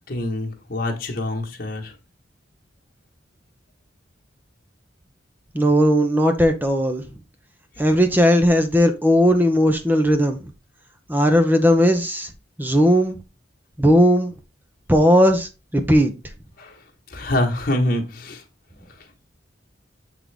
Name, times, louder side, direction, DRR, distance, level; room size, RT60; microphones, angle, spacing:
voice 1, 0.1-1.9 16.6-16.8 17.1-18.4, left 1 dB, 50° left, 1.5 m, -25 dB
voice 2, 5.5-7.0 7.8-10.4 11.1-12.3 12.6-13.2 13.8-14.3 14.9-16.1, equal, 10° right, 0.7 m, -17 dB
7.8 x 3.8 x 3.4 m
head